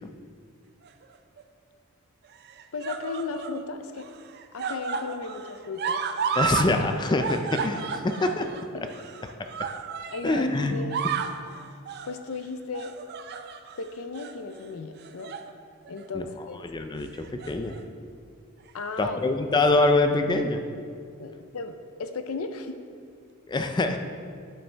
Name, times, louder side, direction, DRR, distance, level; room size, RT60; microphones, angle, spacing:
sound 1, 0.8-1.4 2.3-3.6 3.9-6.7 7.0-10.4 10.8-11.4 11.8-12.1 12.7-13.8 14.1-14.3 15.0-15.5 15.9-16.0 17.1-17.8 18.7-18.8, right 6 dB, 50° right, 0.4 m, -32 dB
voice 1, 2.7-4.1 4.5-6.0 8.7-8.9 10.1-11.1 12.1-12.9 13.8-15.3 15.9-16.6 18.7-19.2 21.2-22.7, left 4 dB, 70° left, 8 dB, 0.6 m, -35 dB
voice 2, 6.3-8.5 10.2-10.8 16.1-16.3 16.6-17.8 19.0-20.6 23.5-24.0, left 2 dB, 20° left, 6 dB, 0.4 m, -24 dB
9.2 x 7.0 x 3.4 m, 2.2 s
head